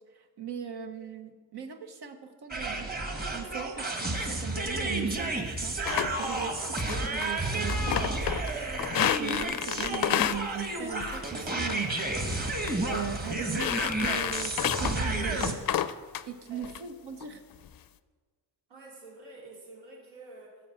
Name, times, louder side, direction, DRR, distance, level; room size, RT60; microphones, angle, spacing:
voice 1, 0.1-5.8 6.2-6.8 7.1-8.2 8.5-12.2 12.8-15.6 16.3-17.4, right 8 dB, 65° right, 6 dB, 1.0 m, -39 dB
sound 1, 2.5-15.5, right 2 dB, 20° right, 1.4 m, -31 dB
sound 2, 5.9-6.3 6.8-7.3 7.6-8.5 8.8-10.4 11.0-11.3 11.6-12.0 12.5-12.7 13.0-13.1 13.5-15.0 15.4-16.2 16.6-16.8 17.2-17.7, left 11 dB, 55° left, 0.5 m, -30 dB
voice 2, 18.7-20.6, right 2 dB, 80° right, -4 dB, 4.1 m, -48 dB
14.0 x 5.2 x 7.5 m, 1.5 s
cardioid pair, 105°, 43 cm